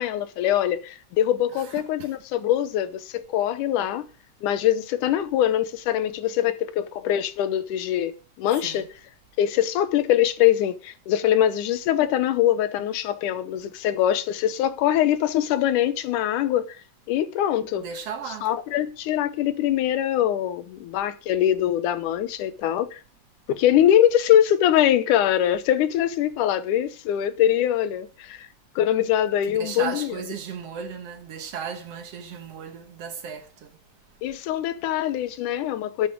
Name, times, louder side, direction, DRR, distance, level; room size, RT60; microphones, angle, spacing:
voice 1, 0.0-4.1 4.4-8.9 9.4-16.8 17.1-17.9 18.4-23.0 23.5-28.5 28.8-30.1 34.2-36.1, left 11 dB, 90° left, 2.4 m, -23 dB
voice 2, 1.5-2.2 8.6-8.9 17.8-18.5 29.4-33.8, right 7 dB, 60° right, 1.9 m, -36 dB
12.0 x 6.9 x 5.1 m
omnidirectional pair, 3.6 m